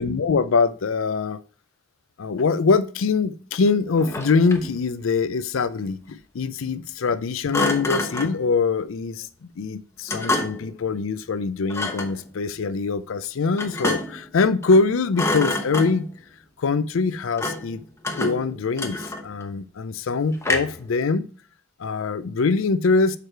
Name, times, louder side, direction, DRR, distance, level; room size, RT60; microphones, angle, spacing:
voice 1, 0.0-1.4 2.2-16.1 16.6-17.8 18.2-21.2 21.8-23.2, left 4 dB, 85° left, 0.5 m, -23 dB
Thump thud, 4.0-4.8 7.5-8.4 10.1-10.7 11.7-12.2 13.6-14.3 14.6-14.9 15.1-16.2 17.4-17.7 18.0-19.4 20.4-20.9, left 2 dB, 15° left, 0.9 m, -27 dB
6.7 x 4.9 x 4.4 m
head